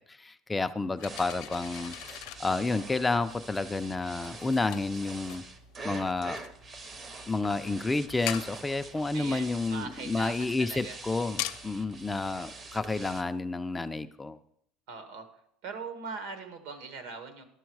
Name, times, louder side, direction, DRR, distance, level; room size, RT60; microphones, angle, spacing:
voice 1, 0.1-1.9 2.4-5.4 5.8-6.4 7.3-14.4, left 3 dB, 10° left, 10 dB, 0.4 m, -30 dB
sound 1, 1.0-13.2, left 15 dB, 75° left, 0.6 m, -44 dB
sound 2, 1.1-13.2, right 3 dB, 25° right, 0.7 m, -45 dB
voice 2, 9.1-11.0 14.9-15.3 15.6-17.4, right 4 dB, 75° right, 8 dB, 1.5 m, -41 dB
11.5 x 7.0 x 4.7 m, 0.70 s
cardioid pair, 145°, 0 cm